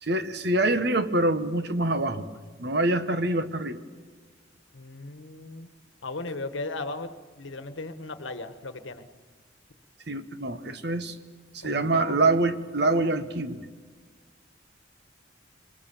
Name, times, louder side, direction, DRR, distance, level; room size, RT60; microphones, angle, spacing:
voice 1, 0.0-2.3 2.6-3.8 10.1-11.2 11.6-13.7, right 2 dB, 55° right, 10 dB, 1.2 m, -25 dB
voice 2, 4.7-5.7 6.0-9.1 11.6-12.2, left 2 dB, 75° left, 11 dB, 1.3 m, -36 dB
25.5 x 22.0 x 7.2 m, 1.5 s
head